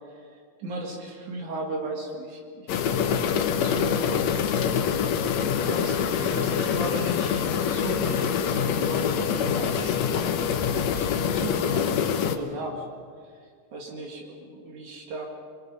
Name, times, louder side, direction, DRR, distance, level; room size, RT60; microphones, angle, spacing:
voice 1, 0.6-5.1 5.6-10.4 10.7-12.9 13.4-15.3, right 2 dB, 65° right, 0 dB, 3.4 m, -36 dB
sound 1, 2.7-12.4, left 7 dB, 65° left, 2.1 m, -25 dB
28.0 x 22.0 x 5.5 m, 2.1 s
omnidirectional pair, 3.7 m